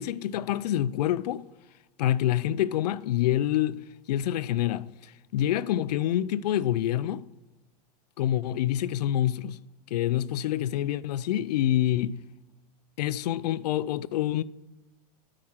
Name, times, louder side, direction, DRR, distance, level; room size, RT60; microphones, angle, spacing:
voice 1, 0.0-1.4 2.0-3.8 4.1-4.9 5.3-7.2 8.2-9.6 9.9-12.2 13.0-14.4, left 12 dB, 80° left, 0.4 m, -26 dB
8.7 x 4.9 x 5.7 m
supercardioid pair, 150°, 21 cm